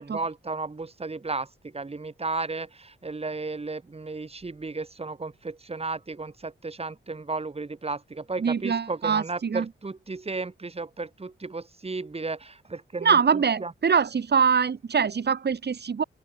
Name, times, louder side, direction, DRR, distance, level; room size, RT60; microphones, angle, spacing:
voice 1, 0.0-13.2 13.6-13.7, right 3 dB, 30° right, 7.6 m, -34 dB
voice 2, 8.4-9.6 13.0-16.0, right 6 dB, 50° right, 2.8 m, -23 dB
open air
wide cardioid pair, 125°, 21 cm